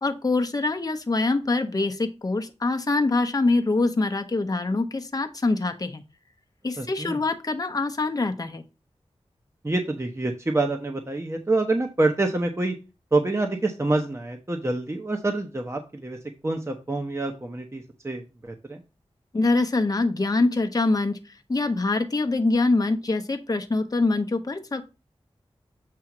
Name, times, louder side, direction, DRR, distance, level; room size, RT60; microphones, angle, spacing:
voice 1, 0.0-6.0 6.6-8.6 19.3-21.2 21.5-24.8, left 3 dB, 35° left, 5 dB, 0.8 m, -24 dB
voice 2, 6.8-7.2 9.6-12.8 13.1-18.8, right 2 dB, 25° right, 4 dB, 0.9 m, -27 dB
7.6 x 2.7 x 5.9 m, 0.29 s
wide cardioid pair, 55°, 11 cm